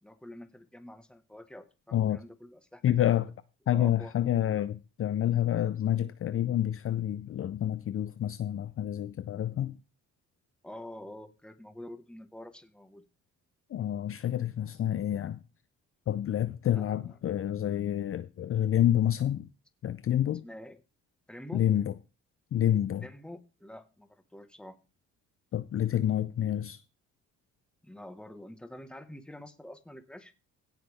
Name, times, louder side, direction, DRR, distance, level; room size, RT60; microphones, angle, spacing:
voice 1, 0.0-3.2 3.7-4.1 10.6-13.0 16.7-17.1 20.4-20.8 21.3-21.7 23.0-24.8 27.8-30.3, left 1 dB, 5° left, 1.4 m, -47 dB
voice 2, 2.8-3.3 3.7-9.8 13.7-15.4 16.1-19.5 19.8-20.4 21.5-21.9 22.5-23.0 25.5-26.8, left 11 dB, 45° left, 0.5 m, -28 dB
17.0 x 5.8 x 3.5 m
cardioid pair, 90°, 30 cm